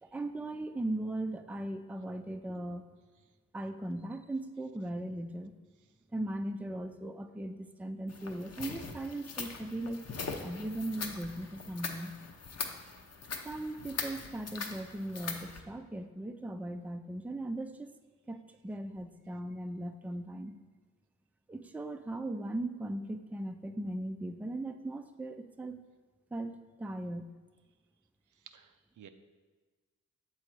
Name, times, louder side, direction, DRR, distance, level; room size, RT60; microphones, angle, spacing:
voice 1, 0.0-2.8 3.5-5.6 6.1-10.0 10.4-12.1 13.4-17.9 18.3-20.6 21.5-25.8 26.3-27.2, right 1 dB, 5° right, 7 dB, 0.4 m, -38 dB
sound 1, 8.1-15.6, left 4 dB, 55° left, 0.7 m, -41 dB
voice 2, 28.3-29.1, right 9 dB, 75° right, 9 dB, 0.5 m, -54 dB
6.7 x 3.8 x 4.5 m, 1.3 s
cardioid pair, 55°, 30 cm